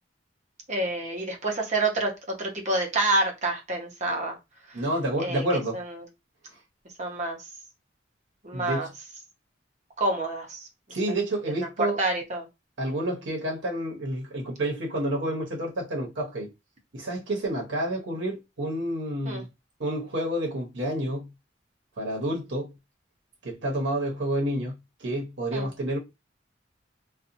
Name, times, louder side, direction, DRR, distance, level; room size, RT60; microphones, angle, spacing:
voice 1, 0.7-2.1 2.4-4.4 5.2-5.4 5.7-6.1 7.0-7.4 8.4-8.9 10.0-10.7 11.8-12.5 19.2-19.4 25.5-25.7, right 2 dB, 40° right, 0.8 m, -27 dB
voice 2, 4.7-5.8 8.5-8.9 10.9-12.0 12.8-16.5 16.9-19.5 19.8-21.3 22.0-22.7 23.4-24.7 25.0-26.0, right 1 dB, 85° right, 0.9 m, -29 dB
2.7 x 2.3 x 2.6 m
head